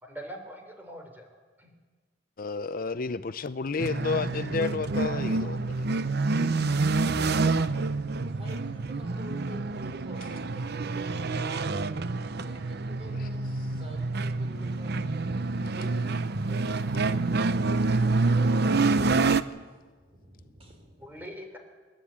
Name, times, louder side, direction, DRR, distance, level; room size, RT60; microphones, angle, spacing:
voice 1, 0.0-1.3 1.6-1.7 15.8-15.9 18.0-18.1 21.0-21.6, equal, 10° right, 4 dB, 3.5 m, -42 dB
voice 2, 2.4-5.9 13.2-13.3, left 4 dB, 50° left, 13 dB, 0.6 m, -31 dB
sound 1, 3.8-19.4, right 3 dB, 60° right, 0.7 m, -27 dB
voice 3, 8.2-15.8 16.3-21.1, right 1 dB, 35° right, 4 dB, 4.3 m, -48 dB
28.5 x 12.0 x 8.7 m, 1.4 s
head